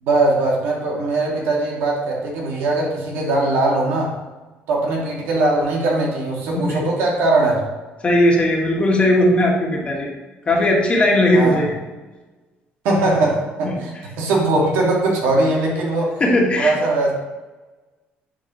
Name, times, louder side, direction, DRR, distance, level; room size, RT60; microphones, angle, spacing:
voice 1, 0.0-4.2 4.7-7.7 11.3-11.6 12.8-13.9 14.2-16.2 16.6-17.1, right 2 dB, 85° right, -2 dB, 2.0 m, -20 dB
voice 2, 8.0-10.1 10.4-11.8 13.6-13.8 16.2-16.7, left 1 dB, 30° left, -1 dB, 1.6 m, -17 dB
9.6 x 4.3 x 3.0 m, 1.2 s
cardioid pair, 115°, 4 cm